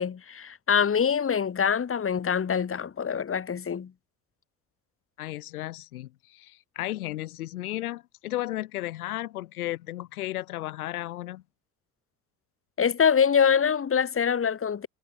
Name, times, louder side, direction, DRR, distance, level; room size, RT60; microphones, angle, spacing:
voice 1, 0.0-3.9 12.8-14.9, left 7 dB, 30° left, 3.9 m, -24 dB
voice 2, 5.2-11.4, left 15 dB, 70° left, 2.3 m, -34 dB
figure-of-eight pair, 60°, 45 cm